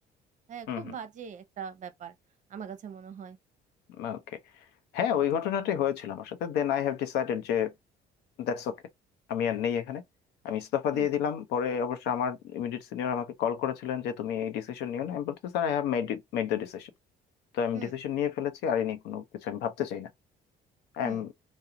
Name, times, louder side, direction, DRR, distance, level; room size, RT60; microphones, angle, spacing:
voice 1, 0.5-2.1 2.5-3.4 10.9-11.1 17.7-17.9 21.0-21.3, right 7 dB, 45° right, 0.7 m, -41 dB
voice 2, 4.0-4.4 4.9-7.7 8.4-8.8 9.3-10.0 10.4-16.9 17.5-20.1 20.9-21.3, left 8 dB, 85° left, 0.6 m, -30 dB
2.4 x 2.1 x 2.7 m
cardioid pair, 110°, 17 cm